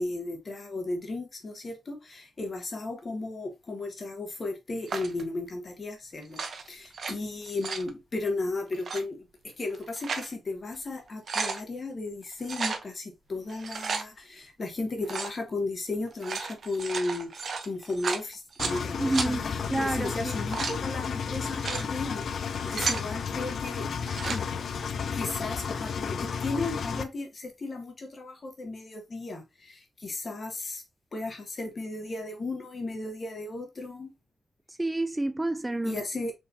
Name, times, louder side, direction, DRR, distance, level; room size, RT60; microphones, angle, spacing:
voice 1, 0.0-9.3 9.6-23.9 24.3-24.5 25.1-30.8 31.1-34.1 35.8-36.3, left 2 dB, 50° left, 1.5 m, -35 dB
sound 1, 4.9-5.2 6.2-7.1 7.4-7.9 8.7-9.0 9.7-10.3 10.7-10.8 11.1-11.6 12.4-12.8 13.5-14.0 15.0-15.4 16.1-18.8 19.1-19.3 20.2-20.8 21.4-21.8 22.4-23.1 23.9-24.4, right 5 dB, 65° right, 0.7 m, -33 dB
Engine, 18.6-27.0, left 6 dB, 70° left, 0.5 m, -33 dB
voice 2, 19.0-20.4 34.7-36.0, right 2 dB, 20° right, 0.4 m, -29 dB
4.6 x 3.2 x 2.7 m
supercardioid pair, 50°, 0 cm